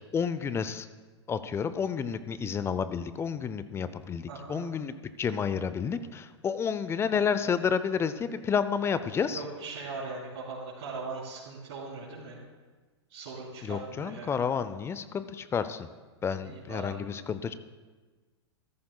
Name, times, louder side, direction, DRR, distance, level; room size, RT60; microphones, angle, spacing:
voice 1, 0.1-0.9 1.3-9.4 13.6-15.9 16.2-17.5, left 6 dB, 15° left, 13 dB, 0.5 m, -30 dB
voice 2, 4.3-4.6 9.3-12.4 13.1-14.4 16.4-17.0, right 3 dB, 60° right, -9 dB, 3.4 m, -40 dB
14.5 x 13.5 x 2.3 m, 1.3 s
hypercardioid pair, 105°, 15 cm